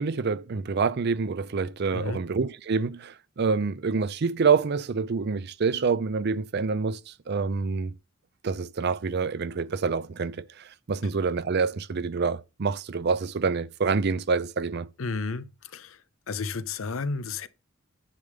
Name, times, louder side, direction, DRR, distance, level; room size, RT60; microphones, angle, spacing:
voice 1, 0.0-7.0 7.3-7.9 8.4-10.4 10.9-14.9, right 5 dB, 55° right, 0.5 m, -27 dB
voice 2, 15.0-15.5 15.7-16.0 16.3-17.5, left 4 dB, 85° left, 0.7 m, -31 dB
10.5 x 3.5 x 6.5 m
head